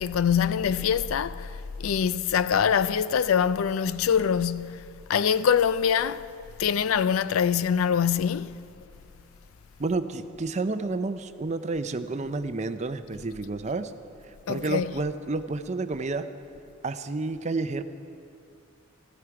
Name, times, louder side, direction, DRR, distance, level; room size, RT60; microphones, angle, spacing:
voice 1, 0.0-1.5 1.8-6.3 6.6-8.6 14.5-15.0, left 7 dB, 90° left, 0.4 m, -24 dB
voice 2, 9.8-13.9 14.5-16.3 16.8-17.8, right 3 dB, 35° right, 0.5 m, -30 dB
15.5 x 14.0 x 4.8 m
head